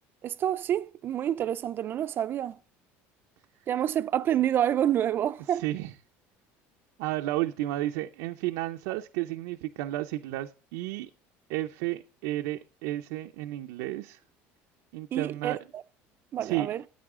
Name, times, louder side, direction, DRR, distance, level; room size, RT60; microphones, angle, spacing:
voice 1, 0.2-2.6 3.7-5.6 15.1-15.6 16.3-16.8, right 10 dB, 40° right, 0.4 m, -28 dB
voice 2, 5.5-6.0 7.0-11.1 11.5-14.2 14.9-15.6 16.4-16.8, right 16 dB, 90° right, 0.6 m, -32 dB
13.5 x 8.9 x 3.7 m
cardioid pair, 140°, 6 cm